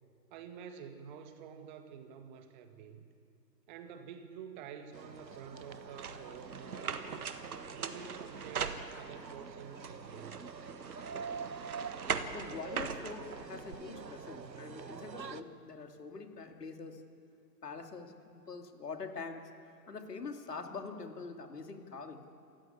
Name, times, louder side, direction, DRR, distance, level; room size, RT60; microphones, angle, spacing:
voice 1, 0.3-3.0 3.7-7.2 7.7-10.4, right 7 dB, 25° right, 8 dB, 1.7 m, -49 dB
sound 1, 4.9-15.4, right 5 dB, 85° right, 1.2 m, -46 dB
sound 2, 6.0-9.3 9.8-13.7, right 6 dB, 60° right, 1.7 m, -40 dB
voice 2, 12.3-17.0 17.6-19.4 19.9-22.2, left 4 dB, 70° left, 5 dB, 2.7 m, -44 dB
27.5 x 14.5 x 8.4 m, 2.4 s
figure-of-eight pair, 130°, 50 cm